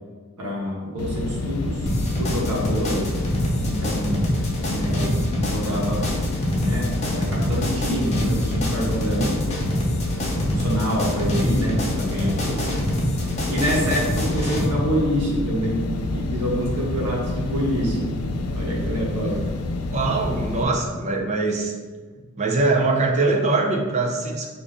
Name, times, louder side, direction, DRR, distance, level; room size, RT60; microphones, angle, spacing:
voice 1, 0.4-1.9 2.2-3.1 3.6-4.3 4.6-6.1 6.5-9.4 10.2-12.8 13.5-15.8 16.1-18.2 18.5-19.4, equal, 90° right, -2 dB, 1.0 m, -26 dB
sound 1, 1.0-20.6, left 2 dB, 75° left, 0.4 m, -28 dB
sound 2, 1.9-14.7, equal, 30° left, 0.6 m, -26 dB
voice 2, 19.9-21.7 22.4-24.5, right 3 dB, 30° right, 0 dB, 0.5 m, -22 dB
3.3 x 2.5 x 3.6 m, 1.5 s
head